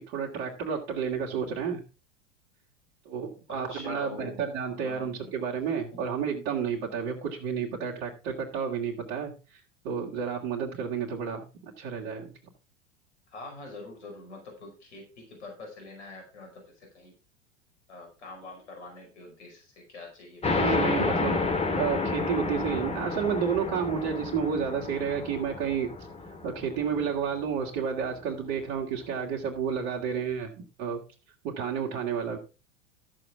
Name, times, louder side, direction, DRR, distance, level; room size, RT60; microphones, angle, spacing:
voice 1, 0.0-1.8 3.0-12.3 20.5-21.4 21.7-25.9 26.4-31.0 31.4-32.4, right 7 dB, 45° right, -3 dB, 2.6 m, -31 dB
voice 2, 3.5-4.4 4.7-5.3 5.9-6.0 13.3-17.1 17.9-20.7, left 2 dB, 65° left, 2 dB, 5.2 m, -45 dB
sound 1, 20.4-27.6, left 3 dB, 15° left, 2.3 m, -30 dB
14.0 x 7.9 x 3.6 m, 0.33 s
figure-of-eight pair, 85°, 37 cm